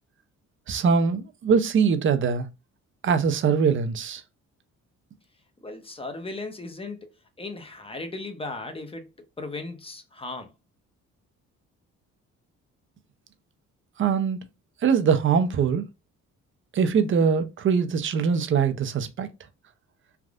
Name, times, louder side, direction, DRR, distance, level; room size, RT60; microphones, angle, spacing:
voice 1, 0.7-2.5 3.0-4.2 14.0-14.4 14.8-15.9 16.7-19.3, right 6 dB, 40° right, 0.6 m, -22 dB
voice 2, 5.6-10.5, left 2 dB, 20° left, 0.7 m, -37 dB
3.4 x 2.5 x 2.4 m
cardioid pair, 90°, 30 cm